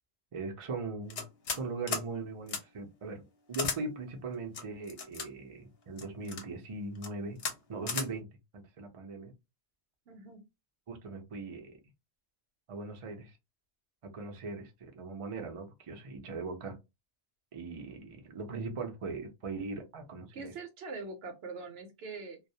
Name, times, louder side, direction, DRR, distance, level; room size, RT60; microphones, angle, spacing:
voice 1, 0.3-1.2 1.5-7.4 7.7-8.3 8.5-9.3 10.9-11.8 12.7-13.3 14.0-16.8 17.5-20.5, right 3 dB, 45° right, 0.4 m, -40 dB
sound 1, 1.1-1.6 1.9-2.1 2.5-2.6 3.5-3.8 4.5-5.3 6.0-6.4 7.0-7.1 7.4-7.6 7.9-8.1, left 5 dB, 65° left, 0.9 m, -35 dB
voice 2, 10.1-10.4 20.3-22.4, right 3 dB, 70° right, 0.8 m, -43 dB
2.3 x 2.0 x 2.7 m
omnidirectional pair, 1.2 m